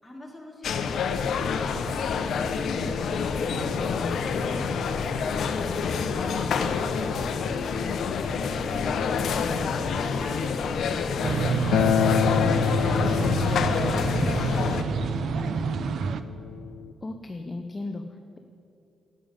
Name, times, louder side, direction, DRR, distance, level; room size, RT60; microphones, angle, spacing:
voice 1, 0.0-9.0 9.8-16.1, equal, 5° left, -2 dB, 3.2 m, -46 dB
sound 1, 0.6-14.8, left 5 dB, 70° left, 0.9 m, -27 dB
voice 2, 9.2-10.0 17.0-18.4, left 2 dB, 25° left, 5 dB, 0.7 m, -36 dB
sound 2, 11.2-16.2, right 6 dB, 65° right, 0.6 m, -28 dB
Acoustic guitar, 11.7-16.9, left 9 dB, 90° left, 0.3 m, -28 dB
12.5 x 8.9 x 8.9 m, 2.7 s
cardioid pair, 105°, 0 cm